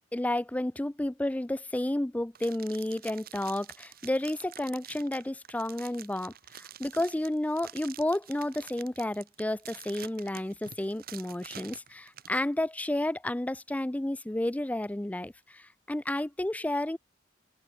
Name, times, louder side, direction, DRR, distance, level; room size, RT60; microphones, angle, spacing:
voice 1, 0.1-17.0, left 1 dB, 10° left, 0.4 m, -31 dB
sound 1, 2.3-12.4, right 10 dB, 50° right, 2.1 m, -48 dB
open air
head